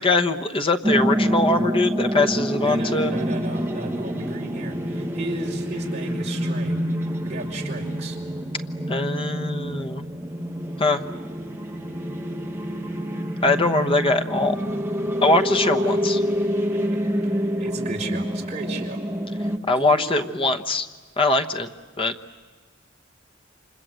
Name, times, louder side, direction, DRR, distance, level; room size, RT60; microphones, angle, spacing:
voice 1, 0.0-3.1 8.9-10.0 10.8-11.0 13.4-14.5 15.2-16.2 19.7-20.9 21.2-21.7 22.0-22.1, left 2 dB, 25° left, 6 dB, 1.1 m, -22 dB
sound 1, 0.8-19.6, equal, 10° right, 1.2 m, -27 dB
voice 2, 2.6-6.9 7.2-8.2 15.6-15.9 16.7-17.0 17.3-19.0 19.4-19.5 19.7-20.3, right 2 dB, 35° right, -1 dB, 5.1 m, -35 dB
29.5 x 26.0 x 7.7 m, 1.4 s
head